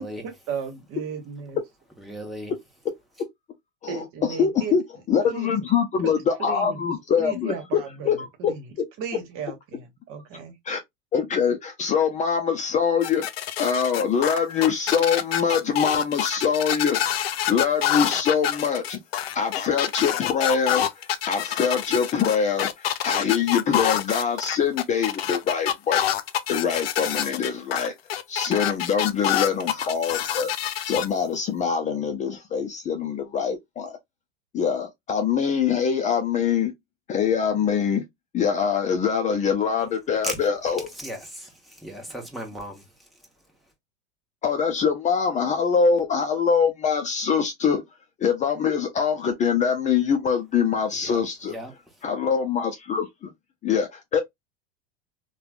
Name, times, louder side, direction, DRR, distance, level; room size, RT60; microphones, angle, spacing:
voice 1, 0.5-1.6 3.9-4.8 5.3-5.5 6.0-6.1 6.4-6.9 7.2-10.5, right 6 dB, 50° right, 1.1 m, -35 dB
voice 2, 2.0-2.5 40.2-40.4 40.9-43.3 50.9-52.0, equal, ahead, 1.0 m, -37 dB
voice 3, 3.8-4.8 5.1-7.8 8.1-8.8 10.6-10.8 11.1-13.3 13.6-17.0 17.5-19.0 19.3-26.0 26.5-27.9 28.3-30.5 30.9-34.0 34.5-36.7 37.1-38.0 38.3-40.9 44.4-47.8 48.2-51.5 52.0-53.3 53.6-54.2, left 6 dB, 25° left, 0.5 m, -24 dB
sound 1, 13.0-31.1, left 11 dB, 90° left, 0.5 m, -26 dB
3.2 x 2.2 x 2.4 m
hypercardioid pair, 105°, 29 cm